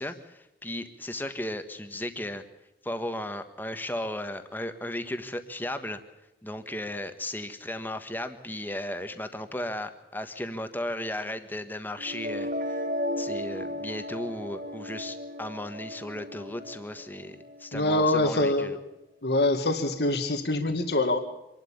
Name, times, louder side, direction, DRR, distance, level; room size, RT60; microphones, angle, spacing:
voice 1, 0.0-2.4 2.8-6.0 6.4-12.8 13.2-18.8, left 1 dB, 10° left, 9 dB, 1.4 m, -35 dB
sound 1, 12.0-18.0, equal, 50° right, 1.2 m, -35 dB
voice 2, 17.7-18.8 19.2-21.2, left 2 dB, 70° left, 7 dB, 1.8 m, -25 dB
26.0 x 12.0 x 8.6 m, 0.94 s
head